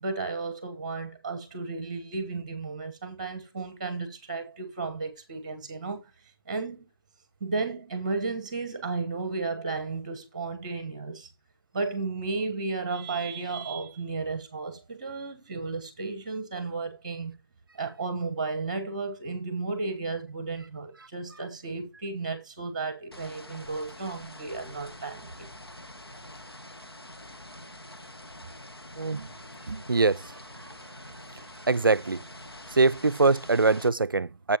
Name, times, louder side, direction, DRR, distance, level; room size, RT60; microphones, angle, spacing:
voice 1, 0.0-6.0 6.5-6.8 7.4-11.3 11.7-17.4 17.7-25.5, right 3 dB, 20° right, 1.2 m, -33 dB
sound 1, 23.1-33.9, left 1 dB, 80° left, 1.6 m, -46 dB
voice 2, 29.0-29.3 29.7-30.2 31.7-32.2 32.7-34.6, right 3 dB, 60° right, 0.4 m, -23 dB
10.0 x 7.5 x 2.9 m
figure-of-eight pair, 160°, 13 cm